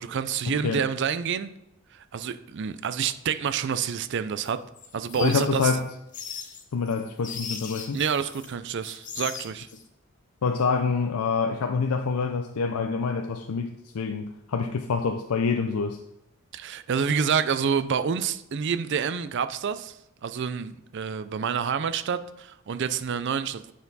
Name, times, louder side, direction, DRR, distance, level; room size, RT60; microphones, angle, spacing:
voice 1, 0.0-1.5 1.9-4.6 4.9-5.7 7.9-9.7 16.5-20.0 20.2-23.7, right 7 dB, 55° right, 0.4 m, -28 dB
sound 1, 4.4-8.5 8.8-9.8, left 6 dB, 35° left, 0.7 m, -39 dB
voice 2, 5.2-5.8 6.7-8.0 10.4-16.0, left 5 dB, 85° left, 0.5 m, -26 dB
9.2 x 4.4 x 4.0 m
head